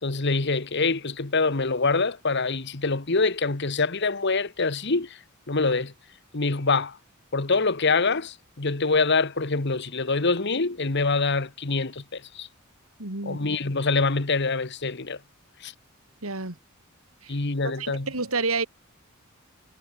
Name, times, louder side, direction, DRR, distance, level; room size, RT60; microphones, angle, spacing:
voice 1, 0.0-5.2 5.5-5.9 6.3-7.0 7.3-12.5 13.2-15.2 15.6-15.7 17.3-18.1, left 3 dB, 55° left, 1.4 m, -25 dB
voice 2, 13.0-13.4 16.2-16.6 17.2-17.4 17.8-18.7, right 3 dB, 90° right, 3.7 m, -29 dB
head